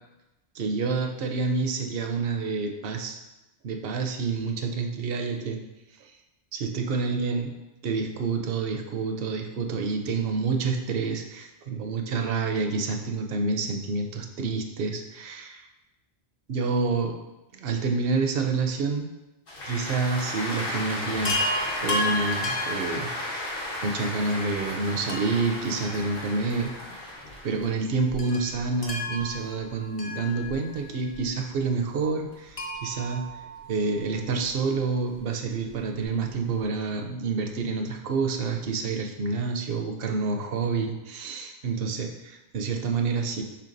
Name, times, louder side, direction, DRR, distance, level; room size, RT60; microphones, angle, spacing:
voice 1, 0.5-3.2 3.6-5.6 6.0-6.1 6.5-7.5 7.8-15.6 16.5-17.2 17.5-19.1 19.7-21.4 21.8-23.6 23.8-26.7 27.4-33.3 33.7-43.4, right 4 dB, 70° right, 4 dB, 0.8 m, -28 dB
sound 1, 19.5-31.9 32.3-34.5 34.9-36.6, left 1 dB, 65° left, 1.2 m, -35 dB
Chime, 21.2-23.7 25.1-26.6 26.9-27.0 28.2-30.9 32.5-34.2 35.7-35.8 36.0-36.1, left 1 dB, 40° left, 0.6 m, -33 dB
5.7 x 3.4 x 2.6 m, 1.0 s
omnidirectional pair, 1.0 m